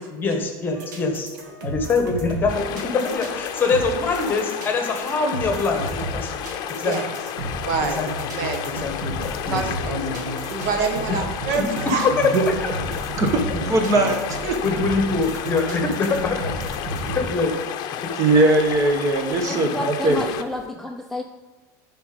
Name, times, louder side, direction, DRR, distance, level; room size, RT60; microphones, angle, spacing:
voice 1, 0.1-1.3 1.6-6.3 6.8-7.0 7.9-8.1 8.8-9.2 9.5-10.2 11.1-11.2 11.6-11.7 12.2-12.3 14.6-16.5 17.0-17.5, left 4 dB, 20° left, 4 dB, 1.4 m, -24 dB
sound 1, 0.7-17.2, right 2 dB, 90° right, 2.0 m, -33 dB
sound 2, 2.5-20.6, left 9 dB, 45° left, 0.7 m, -32 dB
voice 2, 7.6-8.0 8.3-8.7 9.5-10.1 10.5-12.1, right 5 dB, 65° right, 4 dB, 1.5 m, -26 dB
voice 3, 13.2-14.5 18.1-20.2, right 2 dB, 35° right, 4 dB, 1.3 m, -20 dB
voice 4, 19.5-21.2, left 1 dB, 5° left, 3 dB, 0.4 m, -30 dB
10.5 x 4.8 x 5.3 m, 1.2 s
supercardioid pair, 135°, 10 cm